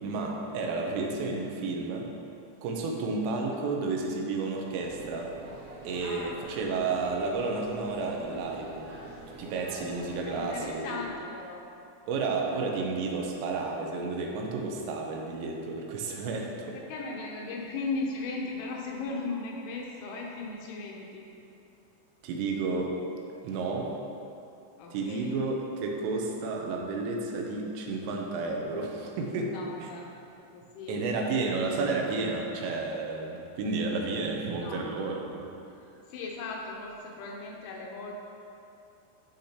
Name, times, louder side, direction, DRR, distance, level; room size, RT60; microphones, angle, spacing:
voice 1, 0.0-2.1 2.6-5.4 5.9-8.9 9.4-11.0 12.1-16.8 22.2-23.0 23.4-23.9 24.9-29.5 29.8-29.9 30.9-35.5, right 3 dB, 85° right, 0 dB, 3.4 m, -31 dB
sound 1, 4.8-10.7, right 2 dB, 65° right, 2.1 m, -46 dB
voice 2, 6.0-6.8 10.3-11.6 16.7-21.2 24.8-25.3 29.4-30.1 30.5-31.1 34.5-34.9 36.1-38.1, left 3 dB, 80° left, -1 dB, 2.9 m, -37 dB
11.5 x 6.6 x 2.9 m, 2.7 s
omnidirectional pair, 5.8 m